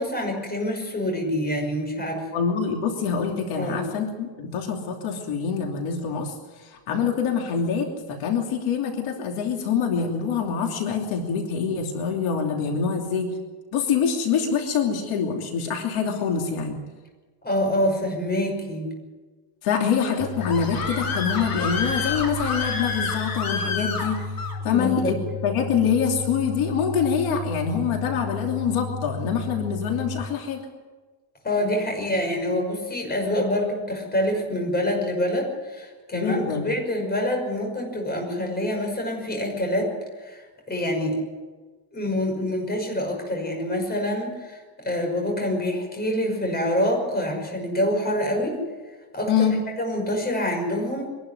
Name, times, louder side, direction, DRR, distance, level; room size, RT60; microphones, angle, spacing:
voice 1, 0.0-2.3 3.6-3.8 17.4-18.9 24.6-25.2 31.4-39.9 40.2-41.2 41.9-44.6 44.8-48.6 49.1-49.5 49.8-51.1, left 1 dB, 20° left, 1 dB, 5.7 m, -26 dB
voice 2, 2.3-6.3 6.6-13.3 13.7-16.8 19.6-24.2 24.6-25.1 25.4-30.6 36.1-36.7 49.3-49.6, left 6 dB, 75° left, 2 dB, 3.1 m, -25 dB
Screaming, 20.0-24.6, left 4 dB, 45° left, 3.5 m, -29 dB
sound 1, 20.2-30.2, left 3 dB, 35° right, 1.2 m, -33 dB
24.5 x 12.0 x 9.8 m, 1.3 s
cardioid pair, 175°, 50 cm